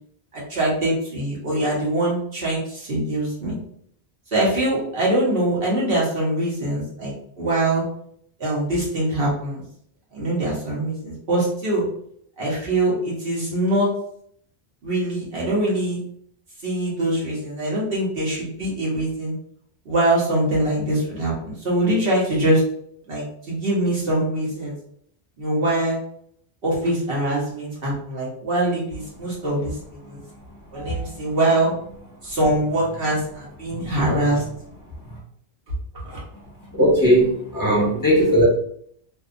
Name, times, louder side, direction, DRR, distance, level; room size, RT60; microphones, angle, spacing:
voice 1, 0.3-3.6 4.3-7.8 8.4-9.6 10.1-11.8 12.4-13.9 14.8-16.0 16.6-19.3 19.8-22.6 23.1-24.7 25.4-26.0 26.6-29.7 30.1-30.2 30.7-31.7 32.2-34.4 36.0-36.2 37.7-37.8, right 1 dB, 65° right, -5 dB, 1.1 m, -23 dB
voice 2, 36.7-38.4, equal, 20° left, -6 dB, 1.1 m, -18 dB
2.6 x 2.3 x 2.4 m, 0.66 s
omnidirectional pair, 1.0 m